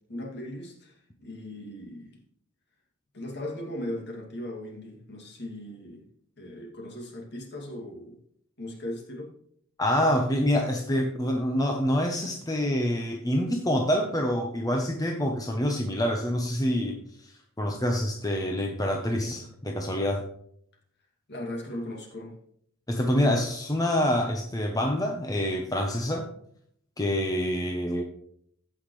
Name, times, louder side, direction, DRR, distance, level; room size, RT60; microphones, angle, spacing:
voice 1, 0.1-2.2 3.1-6.1 6.4-8.2 8.6-9.3 21.3-22.3, left 1 dB, 50° left, 0 dB, 2.4 m, -38 dB
voice 2, 9.8-17.3 17.6-20.2 22.9-26.3 27.0-28.0, equal, 15° left, 2 dB, 0.9 m, -26 dB
15.5 x 5.8 x 3.2 m, 0.66 s
head